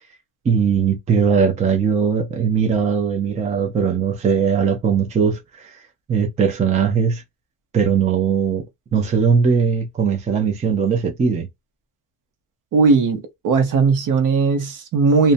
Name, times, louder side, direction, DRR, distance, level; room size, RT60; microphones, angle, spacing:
voice 1, 0.4-7.2 7.7-8.6 8.9-11.5, right 6 dB, 15° right, 0.5 m, -19 dB
voice 2, 12.7-15.3, right 4 dB, 50° right, 0.8 m, -17 dB
2.6 x 2.1 x 2.6 m
cardioid pair, 165°, 40 cm